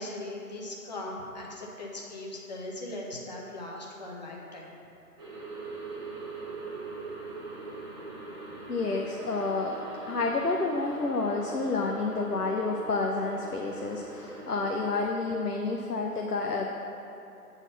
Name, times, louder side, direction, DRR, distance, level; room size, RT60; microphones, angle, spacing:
voice 1, 0.0-4.7, left 1 dB, 30° left, -2 dB, 1.0 m, -39 dB
sound 1, 5.2-14.6, right 3 dB, 20° right, 1.1 m, -42 dB
voice 2, 8.7-9.8 10.1-16.7, left 3 dB, 75° left, 0 dB, 0.9 m, -29 dB
8.2 x 4.1 x 6.9 m, 2.8 s
figure-of-eight pair, 145°, 46 cm